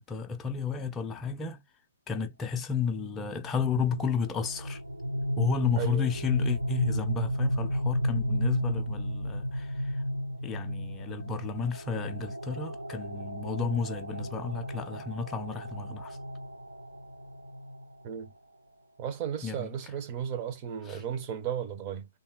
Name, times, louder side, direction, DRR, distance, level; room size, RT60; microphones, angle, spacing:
voice 1, 0.0-1.6 2.1-4.8 5.4-9.9 10.4-16.2 19.4-19.7 20.9-21.0, left 6 dB, 15° left, 0.5 m, -32 dB
sound 1, 3.4-18.3, equal, 75° right, 0.5 m, -33 dB
voice 2, 5.8-6.1 18.0-18.3 19.0-22.1, right 8 dB, 30° right, 0.6 m, -35 dB
3.4 x 2.3 x 2.9 m
figure-of-eight pair, 125°, 0 cm